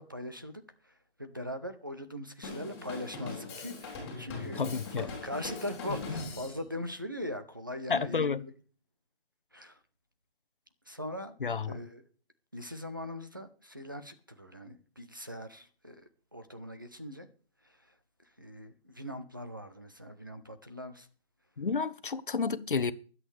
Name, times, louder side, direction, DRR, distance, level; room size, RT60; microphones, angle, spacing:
voice 1, 0.0-8.5 9.5-9.8 10.9-11.4 11.7-12.0 12.5-17.3 17.6-18.0 18.2-21.1, left 1 dB, 20° right, 0.6 m, -41 dB
Drum kit, 2.4-6.6, left 3 dB, 10° left, 3.2 m, -41 dB
voice 2, 4.6-5.1 7.9-8.4 11.4-11.7 21.6-22.9, left 5 dB, 55° left, 1.0 m, -30 dB
24.0 x 8.4 x 3.4 m
hypercardioid pair, 175°, 32 cm